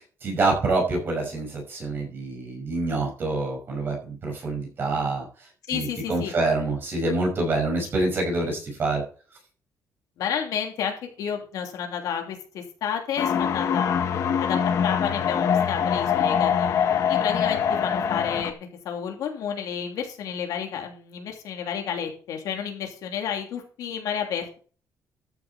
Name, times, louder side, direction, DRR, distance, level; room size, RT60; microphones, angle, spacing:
voice 1, 0.2-5.2 5.7-9.0, right 2 dB, 35° right, 1 dB, 5.7 m, -26 dB
voice 2, 5.7-6.3 10.2-14.0 14.4-16.7 17.1-24.6, left 8 dB, 70° left, 2 dB, 3.1 m, -31 dB
sound 1, 13.2-18.5, left 8 dB, 55° left, 1.2 m, -24 dB
14.0 x 7.7 x 4.4 m, 0.38 s
cardioid pair, 175°, 6 cm